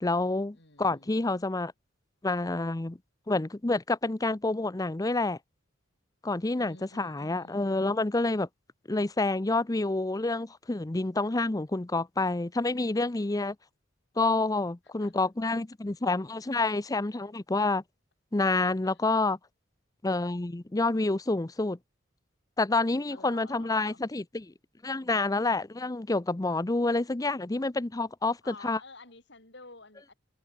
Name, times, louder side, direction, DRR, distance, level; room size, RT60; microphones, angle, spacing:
voice 1, 0.0-1.7 2.2-3.0 3.3-5.4 6.2-8.5 8.9-13.6 14.2-17.8 18.3-19.4 20.0-21.8 22.6-24.5 24.8-28.8, left 2 dB, 20° left, 0.6 m, -28 dB
voice 2, 0.5-1.5 6.5-7.8 15.0-15.3 18.8-19.0 23.1-24.0 28.4-30.1, left 3 dB, 60° left, 6.4 m, -51 dB
head